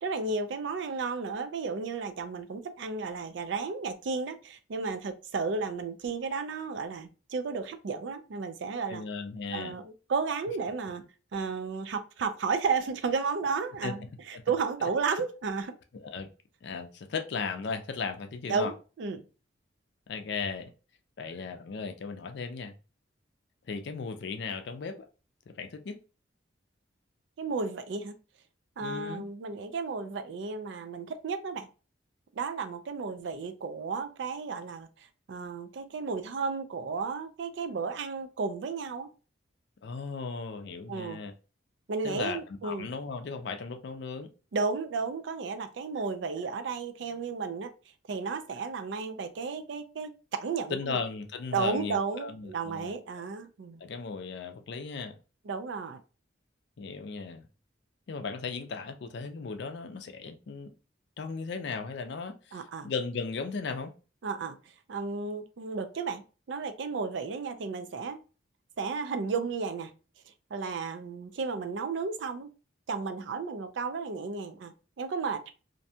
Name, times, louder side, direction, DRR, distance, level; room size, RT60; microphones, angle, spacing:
voice 1, 0.0-9.0 9.5-11.0 11.3-15.7 18.5-19.3 27.4-28.1 28.8-31.7 32.3-39.1 40.9-41.2 41.9-42.9 44.5-47.7 48.1-51.0 51.5-53.8 55.5-56.0 62.5-62.9 64.2-64.6 64.9-68.2 68.8-69.9 70.5-72.5 72.9-75.5, right 4 dB, 70° right, 0.4 m, -33 dB
voice 2, 8.9-9.8 13.8-14.4 15.9-16.3 16.6-18.7 20.1-20.7 21.2-22.7 23.7-25.0 25.5-26.0 28.8-29.2 39.8-41.3 42.0-44.3 50.7-52.9 53.8-55.2 56.8-57.5 58.1-60.7 61.2-63.9, left 4 dB, 60° left, 0.4 m, -36 dB
2.6 x 2.2 x 2.7 m
head